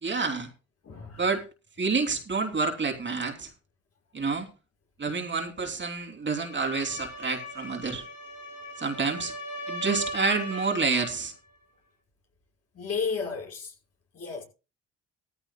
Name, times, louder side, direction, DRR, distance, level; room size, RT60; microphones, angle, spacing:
voice 1, 0.0-0.5 1.2-1.4 1.8-3.5 4.1-4.5 5.0-8.0 8.8-9.3 9.7-11.3, right 4 dB, 40° right, 3.0 m, -28 dB
voice 2, 0.8-1.3 12.7-13.7 14.1-14.4, left 5 dB, 55° left, 6.0 m, -33 dB
sound 1, 6.3-11.2, equal, 85° left, 5.2 m, -38 dB
17.5 x 14.5 x 2.3 m
cardioid pair, 90°, 30 cm